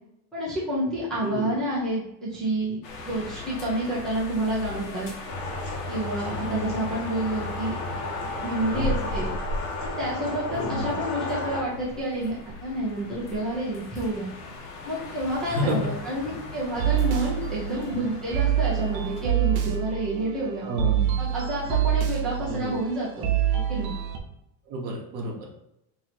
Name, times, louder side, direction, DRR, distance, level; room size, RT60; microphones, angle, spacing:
voice 1, 0.3-5.1 5.9-7.7 8.4-9.3 9.8-12.3 12.6-14.3 14.8-20.7 21.2-23.9, right 1 dB, ahead, -9 dB, 0.7 m, -29 dB
sound 1, 2.8-19.3, left 2 dB, 75° left, 1.1 m, -38 dB
sound 2, 5.3-11.6, left 2 dB, 55° left, 1.5 m, -33 dB
voice 2, 8.7-9.1 10.5-10.8 15.5-15.8 17.8-17.9 20.6-21.2 22.5-22.8 24.7-25.5, right 1 dB, 45° right, -1 dB, 1.0 m, -30 dB
sound 3, 16.7-24.2, right 11 dB, 90° right, 0.9 m, -26 dB
3.1 x 2.9 x 4.2 m, 0.81 s
cardioid pair, 175°, 45 cm